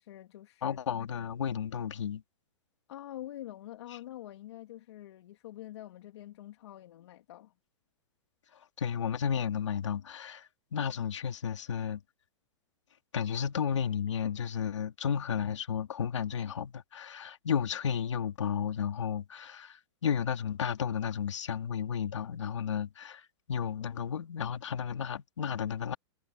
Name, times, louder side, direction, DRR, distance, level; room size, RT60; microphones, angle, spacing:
voice 1, 0.0-0.8 2.9-7.5, left 13 dB, 70° left, 2.6 m, -46 dB
voice 2, 0.6-2.2 8.5-12.0 13.1-26.0, left 7 dB, 90° left, 2.6 m, -33 dB
hypercardioid pair, 135°, 15 cm